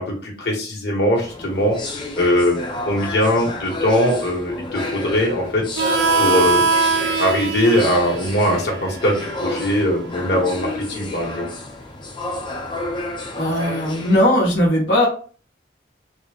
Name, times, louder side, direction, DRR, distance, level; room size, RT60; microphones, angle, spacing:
voice 1, 0.0-1.8 2.2-2.6 2.8-5.7 6.2-6.6 6.9-11.5, left 1 dB, 60° left, -2 dB, 1.2 m, -20 dB
sound 1, 1.1-14.3, left 2 dB, 25° left, 0.5 m, -31 dB
Harmonica, 5.8-11.0, right 4 dB, 70° right, 0.4 m, -23 dB
voice 2, 13.4-15.1, left 1 dB, 80° left, -3 dB, 1.1 m, -18 dB
3.7 x 2.1 x 3.4 m, 0.41 s
head